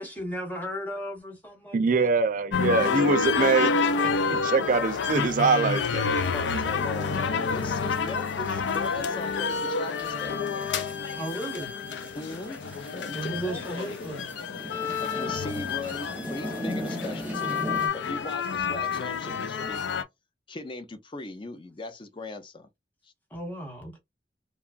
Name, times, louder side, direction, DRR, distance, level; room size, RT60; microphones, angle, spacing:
voice 1, 0.0-2.1 11.1-11.7 13.1-14.3 16.8-17.9 23.3-24.0, right 1 dB, 10° left, 1.1 m, -36 dB
voice 2, 1.7-6.0, right 4 dB, 45° right, 0.4 m, -24 dB
sound 1, 2.5-20.0, left 5 dB, 80° left, 0.5 m, -29 dB
voice 3, 5.9-10.4 12.1-12.6 12.9-14.2 15.0-19.8 20.5-22.7 23.0-23.1, left 2 dB, 30° left, 0.5 m, -39 dB
sound 2, 6.2-17.9, equal, 10° right, 0.7 m, -40 dB
2.9 x 2.3 x 2.4 m
head